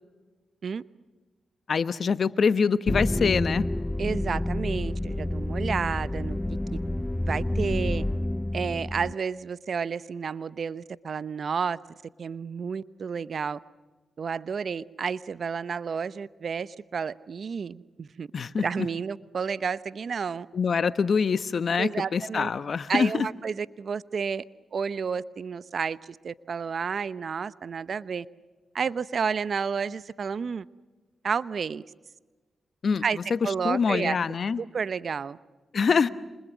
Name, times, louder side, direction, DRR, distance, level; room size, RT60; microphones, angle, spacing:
voice 1, 1.7-3.7 18.3-18.7 20.5-23.3 32.8-33.0 33.3-34.6 35.7-36.1, left 5 dB, 60° left, 1.2 m, -25 dB
sound 1, 2.9-9.1, left 1 dB, 15° left, 0.7 m, -29 dB
voice 2, 4.0-6.6 7.2-8.0 8.5-11.8 12.2-13.6 14.2-18.3 18.6-20.5 21.8-22.5 22.9-24.4 24.7-28.3 28.7-30.7 31.2-31.8 33.0-33.2 33.4-34.2 34.6-35.4, right 6 dB, 60° right, 0.8 m, -31 dB
28.5 x 27.0 x 6.3 m
supercardioid pair, 40°, 0 cm